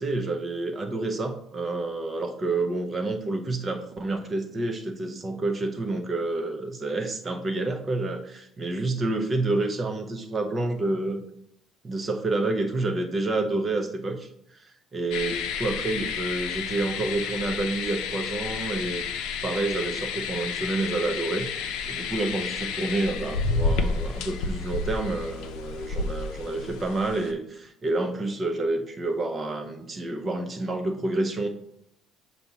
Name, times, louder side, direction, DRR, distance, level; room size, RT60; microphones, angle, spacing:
voice 1, 0.0-11.2 11.8-19.0 19.4-21.5 21.9-31.5, right 2 dB, 20° right, 4 dB, 0.6 m, -29 dB
Gas Sample, 15.1-27.3, left 4 dB, 80° left, 0.7 m, -31 dB
7.1 x 2.7 x 5.6 m, 0.76 s
cardioid pair, 170°, 0 cm